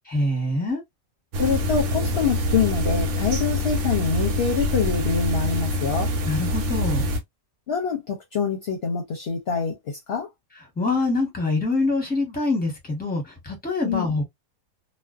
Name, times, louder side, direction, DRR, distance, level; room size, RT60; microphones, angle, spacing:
voice 1, 0.1-0.8 6.2-7.1 10.8-14.3, left 2 dB, 10° left, 1.0 m, -25 dB
sound 1, 1.3-7.2, left 1 dB, 70° right, 1.0 m, -25 dB
voice 2, 1.4-6.1 7.7-10.3 13.8-14.1, left 6 dB, 60° left, 0.8 m, -25 dB
2.4 x 2.3 x 2.4 m
omnidirectional pair, 1.4 m